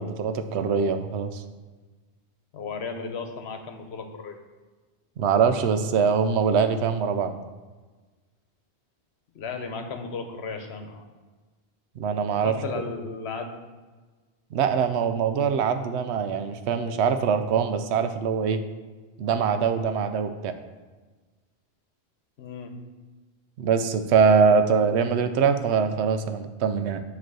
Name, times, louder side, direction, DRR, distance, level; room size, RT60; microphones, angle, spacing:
voice 1, 0.0-1.4 5.2-7.3 12.0-12.8 14.5-18.6 19.2-20.5 23.6-27.0, right 6 dB, 85° right, 8 dB, 0.9 m, -23 dB
voice 2, 2.5-4.4 9.3-11.0 12.4-13.6 22.4-22.7, left 4 dB, 80° left, 6 dB, 1.0 m, -35 dB
7.7 x 3.1 x 6.1 m, 1.3 s
omnidirectional pair, 1.1 m